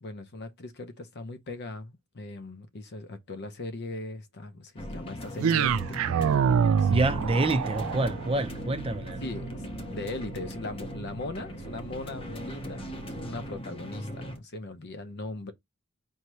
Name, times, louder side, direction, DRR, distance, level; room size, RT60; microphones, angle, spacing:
voice 1, 0.0-6.0 6.8-7.5 9.2-9.7 9.9-15.5, left 2 dB, 55° left, 0.7 m, -39 dB
sound 1, 4.8-14.4, left 1 dB, 25° left, 0.8 m, -39 dB
sound 2, 5.4-13.6, right 7 dB, 70° right, 0.3 m, -29 dB
voice 2, 6.9-9.2, right 2 dB, 25° right, 0.6 m, -27 dB
4.6 x 2.7 x 3.1 m
head